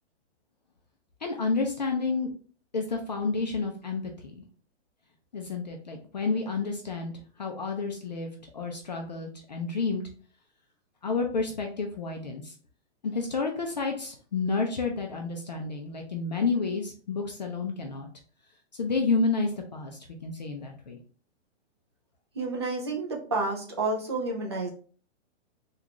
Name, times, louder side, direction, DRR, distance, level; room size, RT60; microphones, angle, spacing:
voice 1, 1.2-2.3 2.7-4.4 5.3-7.1 7.4-10.0 11.0-12.5 13.0-18.1 18.8-21.0, left 4 dB, 40° left, 2 dB, 0.4 m, -30 dB
voice 2, 22.3-24.7, right 3 dB, 25° right, -1 dB, 0.4 m, -30 dB
3.8 x 2.3 x 2.9 m, 0.42 s
hypercardioid pair, 180°, 35 cm